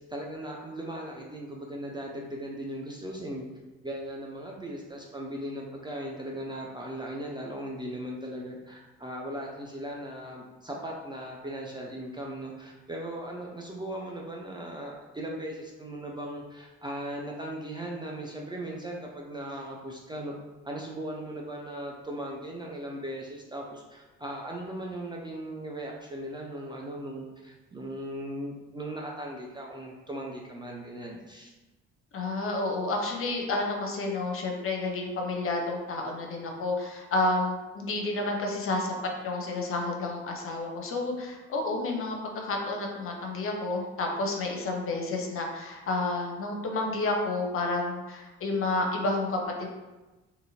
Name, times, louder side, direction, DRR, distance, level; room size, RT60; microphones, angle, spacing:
voice 1, 0.0-3.5 3.8-20.3 20.6-31.5, right 1 dB, 15° right, -2 dB, 0.4 m, -38 dB
voice 2, 32.1-38.9 39.2-49.7, left 2 dB, 40° left, 1 dB, 0.6 m, -30 dB
2.7 x 2.6 x 2.7 m, 1.2 s
figure-of-eight pair, 45°, 33 cm